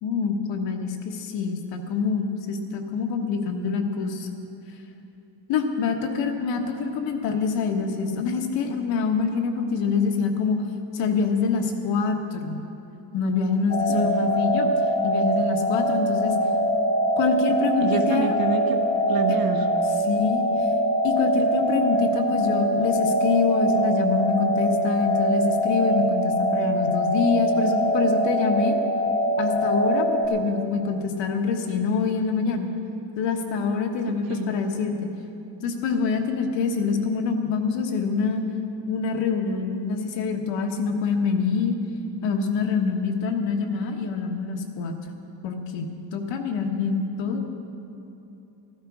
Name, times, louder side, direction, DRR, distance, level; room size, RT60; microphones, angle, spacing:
voice 1, 0.0-4.3 5.5-10.6 10.9-12.6 13.1-14.7 15.0-16.3 17.2-18.3 19.3-19.4 20.1-20.5 21.0-28.8 29.4-32.7 33.2-35.1 35.6-38.4 38.9-41.7 42.2-45.0 45.4-47.5, left 5 dB, 65° left, 4 dB, 1.4 m, -25 dB
sound 1, 13.7-30.3, equal, 20° left, 0.7 m, -23 dB
voice 2, 13.9-14.5 17.8-18.8 19.1-19.7 34.1-34.6, right 7 dB, 50° right, 7 dB, 1.0 m, -28 dB
14.5 x 12.0 x 4.9 m, 2.9 s
cardioid pair, 180°, 47 cm